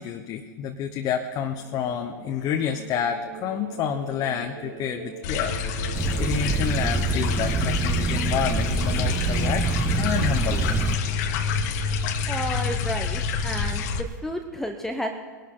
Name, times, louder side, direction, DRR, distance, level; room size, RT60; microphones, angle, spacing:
voice 1, 0.0-5.6 5.8-9.7 10.0-10.8, left 8 dB, 35° left, 4 dB, 1.0 m, -29 dB
sound 1, 0.9-12.9, right 4 dB, 60° right, 1.7 m, -42 dB
sound 2, 5.2-14.0, left 5 dB, 55° left, 1.4 m, -27 dB
sound 3, 5.9-11.0, right 5 dB, 15° right, 0.5 m, -26 dB
voice 2, 12.3-13.8 14.2-15.1, equal, 5° left, 3 dB, 0.9 m, -31 dB
21.5 x 12.0 x 3.9 m, 1.5 s
hypercardioid pair, 120°, 10 cm